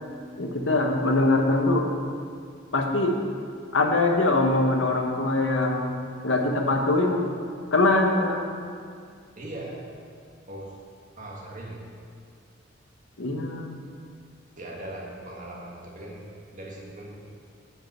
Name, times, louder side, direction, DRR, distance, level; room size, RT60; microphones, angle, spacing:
voice 1, 0.4-1.9 2.7-3.2 3.7-5.9 6.2-7.3 7.7-8.4 13.2-13.8, left 2 dB, 85° left, 3 dB, 1.2 m, -22 dB
voice 2, 9.4-9.8 10.5-10.8 11.2-11.8 14.6-17.1, right 1 dB, 45° right, -2 dB, 1.8 m, -39 dB
8.8 x 5.7 x 7.8 m, 2.2 s
head